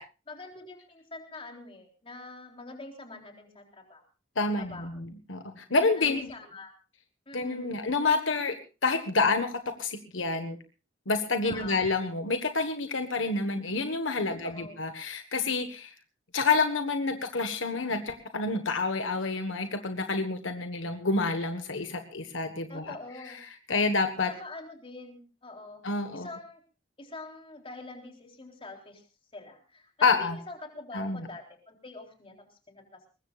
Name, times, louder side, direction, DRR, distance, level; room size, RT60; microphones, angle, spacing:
voice 1, 0.3-4.0 4.5-5.0 6.0-6.7 7.3-7.8 11.4-11.8 14.3-14.8 22.7-23.4 24.2-25.8 26.1-26.6 27.0-29.0 29.3-32.3 32.7-33.0, left 2 dB, 30° left, 2 dB, 3.8 m, -45 dB
voice 2, 4.4-6.3 7.3-8.5 8.8-10.6 11.1-15.9 16.3-22.9 23.7-24.3 25.8-26.3 30.0-30.4 30.9-31.3, left 3 dB, 75° left, 7 dB, 1.5 m, -28 dB
23.0 x 20.0 x 2.5 m, 0.32 s
head